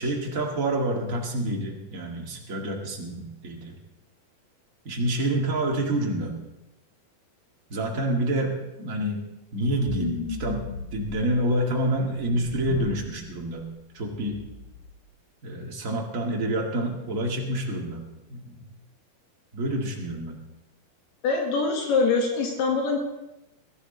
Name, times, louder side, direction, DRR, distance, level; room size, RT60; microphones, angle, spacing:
voice 1, 0.0-3.7 4.8-6.4 7.7-9.2 9.5-10.6 10.9-13.7 13.9-14.4 15.4-18.0 18.3-18.5 19.5-20.4, right 1 dB, 30° right, 0 dB, 1.6 m, -28 dB
sound 1, 9.9-11.4 12.1-13.1 13.4-13.6 14.0-14.9, left 3 dB, 60° left, 3.5 m, -35 dB
voice 2, 21.2-23.0, left 4 dB, 85° left, 1 dB, 3.9 m, -24 dB
21.5 x 13.0 x 4.0 m, 0.98 s
omnidirectional pair, 4.5 m